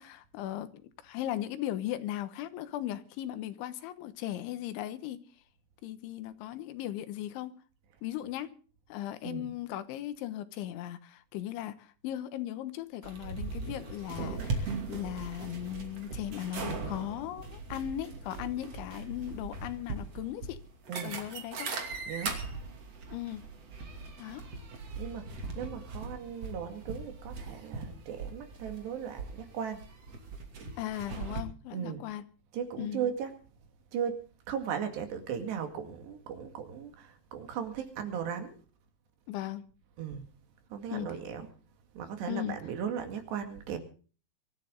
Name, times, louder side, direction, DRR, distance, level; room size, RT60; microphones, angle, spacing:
voice 1, 0.0-5.2 5.8-7.6 8.0-8.5 8.9-20.6 21.0-21.7 23.1-23.5 24.2-24.5 30.8-32.3 32.8-33.0 39.3-39.6 40.9-41.1 42.3-42.6, left 12 dB, 85° left, 3.5 m, -37 dB
sound 1, 13.0-31.4, right 3 dB, 40° right, 2.9 m, -39 dB
voice 2, 25.0-29.8 31.7-32.0 32.5-33.3 33.9-34.2 34.5-38.6 40.0-40.2 40.7-41.5 42.0-43.8, right 8 dB, 70° right, 4.2 m, -37 dB
24.0 x 13.5 x 3.8 m
omnidirectional pair, 5.3 m